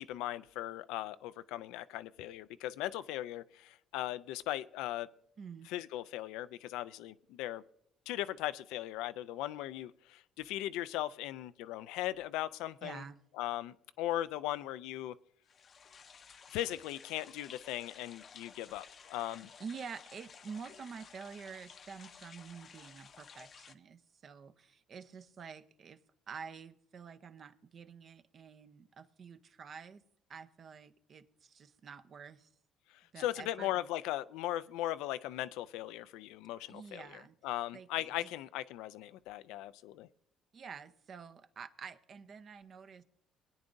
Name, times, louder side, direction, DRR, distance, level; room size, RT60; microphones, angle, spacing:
voice 1, 0.0-5.1 5.7-7.6 8.1-13.0 13.4-15.1 16.5-19.5 32.9-40.1, left 14 dB, 85° left, 14 dB, 0.4 m, -38 dB
voice 2, 5.4-5.7 12.8-13.2 19.6-26.0 26.3-30.0 30.3-32.5 33.1-33.7 36.7-37.4 37.7-38.3 40.5-43.0, right 6 dB, 45° right, 11 dB, 0.7 m, -48 dB
sound 1, 15.5-23.7, left 6 dB, 45° left, 0.7 m, -55 dB
20.5 x 9.5 x 2.6 m, 0.71 s
cardioid pair, 95°, 0 cm